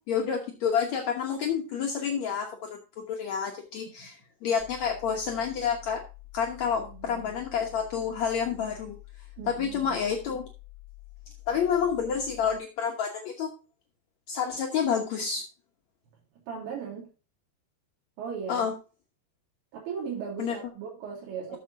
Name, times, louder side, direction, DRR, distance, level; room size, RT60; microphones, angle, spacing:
voice 1, 0.1-6.0 6.3-9.0 9.5-10.4 11.5-13.5 14.3-15.4 18.5-18.7 20.4-20.6, left 7 dB, 75° left, 1 dB, 1.6 m, -29 dB
sound 1, 4.6-12.6, left 19 dB, 10° left, 5.6 m, -48 dB
voice 2, 6.7-7.3 9.4-10.0 16.5-17.1 18.2-18.7 19.7-21.6, right 6 dB, 90° right, -2 dB, 5.3 m, -37 dB
14.0 x 7.2 x 2.7 m, 0.33 s
omnidirectional pair, 5.0 m